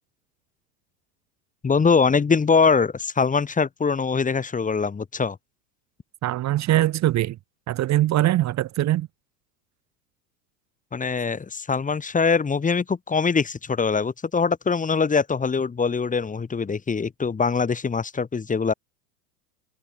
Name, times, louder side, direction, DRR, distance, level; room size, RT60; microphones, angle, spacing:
voice 1, 1.6-5.4 10.9-18.7, left 5 dB, 15° left, 2.5 m, -23 dB
voice 2, 6.2-7.4 7.7-9.1, right 14 dB, 35° right, 1.7 m, -22 dB
hypercardioid pair, 95°, 48 cm